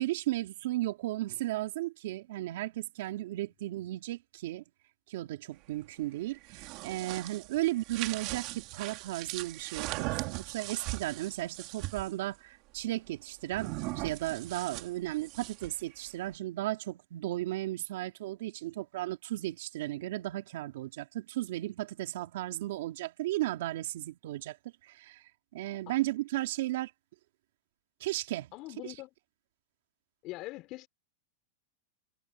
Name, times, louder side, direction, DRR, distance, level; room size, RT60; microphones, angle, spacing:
voice 1, 0.0-4.6 5.1-24.6 24.8-25.2 25.5-26.9 28.0-28.5 28.8-28.9, right 16 dB, 70° right, 3.1 m, -35 dB
sound 1, 6.3-12.1 13.5-15.8, right 21 dB, 45° right, 2.7 m, -39 dB
voice 2, 28.5-29.1 30.2-30.9, left 19 dB, 40° left, 4.5 m, -42 dB
supercardioid pair, 145°, 0 cm